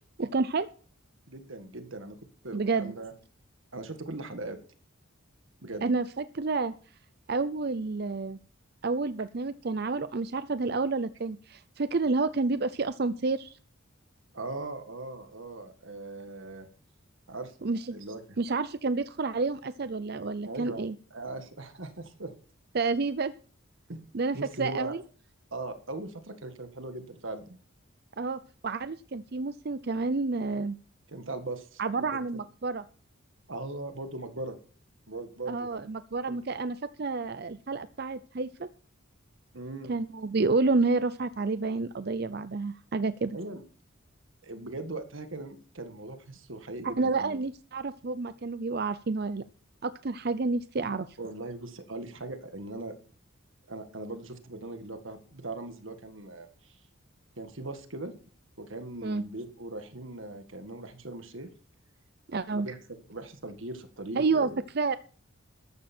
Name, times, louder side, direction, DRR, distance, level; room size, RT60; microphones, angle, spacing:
voice 1, 0.2-0.7 2.5-2.9 5.8-6.7 7.3-8.4 8.8-13.6 17.6-18.0 18.4-20.9 22.7-23.3 24.1-25.0 28.2-30.8 31.8-32.8 35.5-38.7 39.9-43.4 46.8-49.4 49.8-51.2 59.0-59.2 62.3-62.7 64.2-64.9, right 3 dB, 50° right, 13 dB, 0.5 m, -29 dB
voice 2, 1.3-2.2 2.4-3.1 3.7-4.6 5.6-5.8 14.3-16.7 17.3-17.6 17.9-18.4 20.4-20.8 21.1-22.3 23.9-24.0 24.3-25.0 25.5-27.6 31.1-32.4 33.5-34.6 35.1-35.8 36.3-36.4 39.5-40.0 43.3-43.6 44.4-47.4 51.2-53.0 53.7-56.8 57.4-58.1 58.6-61.5 62.5-62.8 63.1-64.6, right 2 dB, 65° right, 8 dB, 1.8 m, -39 dB
14.0 x 11.5 x 4.4 m, 0.40 s
head